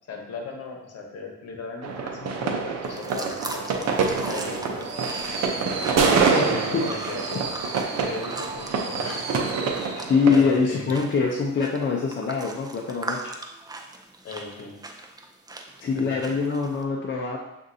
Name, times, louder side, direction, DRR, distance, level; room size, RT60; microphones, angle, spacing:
voice 1, 0.1-4.9 6.5-9.3 10.3-10.9 14.2-14.8 15.9-16.4, left 4 dB, 55° left, 1 dB, 1.1 m, -37 dB
sound 1, 1.8-10.4, right 5 dB, 60° right, 0.7 m, -26 dB
sound 2, 2.8-16.8, right 2 dB, 15° right, 0.4 m, -40 dB
sound 3, 3.4-9.3, right 2 dB, 40° right, 1.0 m, -42 dB
voice 2, 6.3-6.8 10.0-13.3 15.8-17.4, left 5 dB, 40° left, -2 dB, 0.6 m, -24 dB
7.2 x 2.6 x 2.7 m, 0.89 s
cardioid pair, 90°, 30 cm